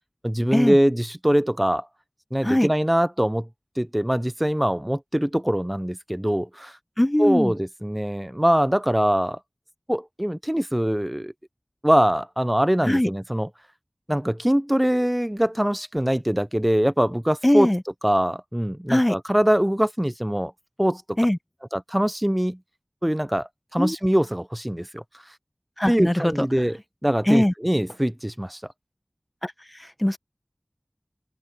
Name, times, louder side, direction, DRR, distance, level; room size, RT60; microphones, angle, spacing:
voice 1, 0.2-1.9 2.3-3.5 3.8-6.7 7.2-9.4 9.9-11.3 11.8-13.5 14.1-17.7 18.0-20.5 20.8-21.2 21.7-22.6 23.0-25.0 25.9-26.8 27.0-28.6, equal, 15° right, 0.5 m, -23 dB
voice 2, 7.0-7.5 12.8-13.1 17.4-17.8 18.9-19.1 21.2-21.4 23.8-24.0 25.8-26.5 27.2-27.5 29.4-30.2, left 1 dB, 20° left, 1.0 m, -21 dB
wide cardioid pair, 40°, 0 cm